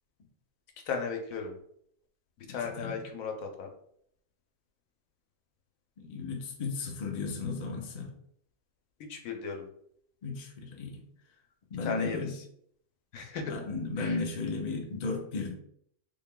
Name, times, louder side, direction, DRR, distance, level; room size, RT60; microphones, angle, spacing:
voice 1, 0.9-1.6 2.5-3.7 9.0-9.7 11.8-12.4 13.1-13.5 14.0-14.2, left 5 dB, 75° left, 3 dB, 1.1 m, -36 dB
voice 2, 6.0-8.1 10.2-10.9 11.7-12.3 13.5-15.5, left 4 dB, 45° left, 1 dB, 0.5 m, -34 dB
3.5 x 2.3 x 3.6 m, 0.68 s
omnidirectional pair, 1.5 m